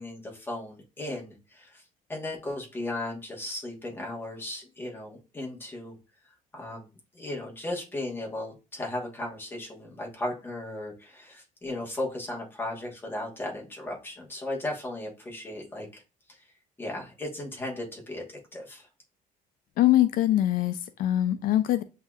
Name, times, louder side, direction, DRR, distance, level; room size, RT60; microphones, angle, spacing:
voice 1, 0.0-1.8 2.1-5.9 6.5-16.0 16.3-16.5 16.8-18.9, left 1 dB, 15° left, -1 dB, 1.2 m, -36 dB
voice 2, 19.8-21.8, left 13 dB, 70° left, 11 dB, 0.4 m, -23 dB
7.9 x 2.7 x 2.3 m, 0.32 s
cardioid pair, 180°, 15 cm